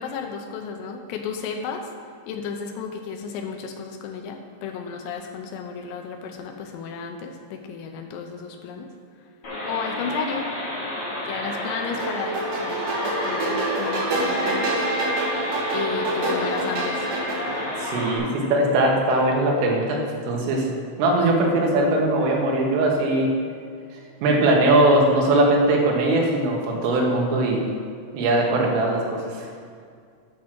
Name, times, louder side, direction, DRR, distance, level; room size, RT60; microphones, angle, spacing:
voice 1, 0.0-1.9 2.3-8.9 9.7-10.5 11.2-14.8 15.7-17.1, left 6 dB, 90° left, 3 dB, 3.4 m, -33 dB
sound 1, 9.4-18.2, left 1 dB, 40° left, 2.2 m, -31 dB
sound 2, 12.0-17.7, right 2 dB, 60° right, 2.6 m, -27 dB
voice 2, 17.8-20.0 20.3-20.6 21.0-23.3 24.2-27.6 28.1-29.2, right 1 dB, 75° right, -1 dB, 3.8 m, -20 dB
9.4 x 6.2 x 6.1 m, 2.2 s
omnidirectional pair, 6.0 m